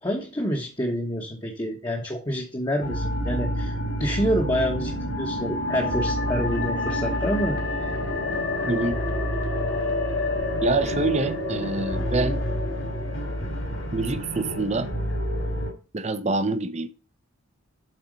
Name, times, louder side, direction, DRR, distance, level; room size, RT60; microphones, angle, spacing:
voice 1, 0.0-3.7 4.0-7.6, equal, 20° left, 1.0 m, -27 dB
sound 1, 2.8-15.7, left 1 dB, 60° left, 2.5 m, -28 dB
voice 2, 8.7-9.0 10.6-12.4 13.9-14.9 15.9-16.9, right 3 dB, 30° right, 0.6 m, -26 dB
7.7 x 4.2 x 6.3 m
head